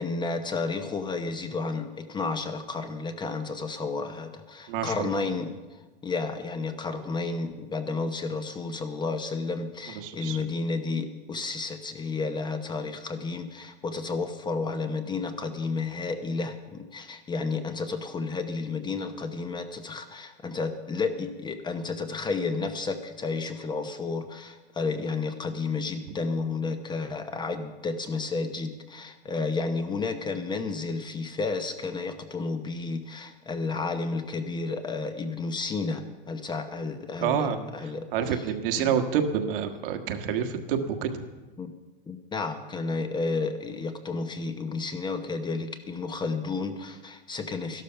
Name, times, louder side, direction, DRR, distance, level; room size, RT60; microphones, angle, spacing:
voice 1, 0.0-5.5 6.0-38.4 38.8-38.9 41.6-41.7 42.1-47.8, left 4 dB, 15° left, 8 dB, 0.8 m, -32 dB
voice 2, 4.7-5.2 9.9-10.4 37.2-37.7 38.1-41.1, right 8 dB, 65° right, 6 dB, 1.5 m, -28 dB
12.5 x 12.0 x 5.7 m, 1.2 s
supercardioid pair, 135°, 29 cm